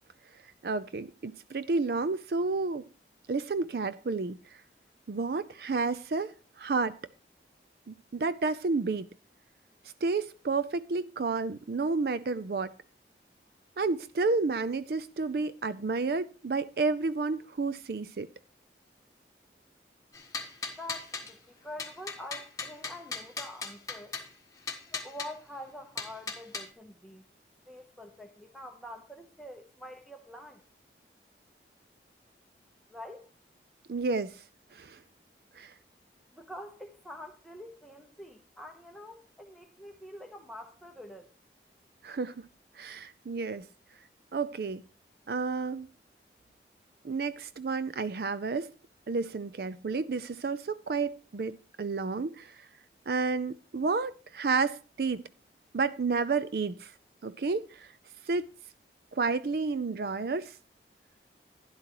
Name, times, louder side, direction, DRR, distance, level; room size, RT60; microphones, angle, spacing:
voice 1, 0.6-2.9 3.3-4.6 5.1-7.0 7.9-9.1 10.0-12.7 13.8-18.3 33.9-34.4 34.7-35.0 35.6-35.7 42.0-42.5 42.8-43.7 44.3-44.8 45.3-45.9 47.0-48.7 49.1-52.7 53.1-55.2 55.7-56.9 57.2-57.9 58.3-58.5 59.1-60.6, right 4 dB, 55° right, 0.4 m, -31 dB
sound 1, 20.1-21.3 21.8-24.3 24.7-25.3 26.0-26.7, left 4 dB, 20° left, 1.4 m, -38 dB
voice 2, 20.7-24.1 24.9-27.3 27.7-30.6 32.9-33.3 36.3-41.3, left 1 dB, ahead, 0.8 m, -46 dB
12.0 x 11.0 x 3.0 m
head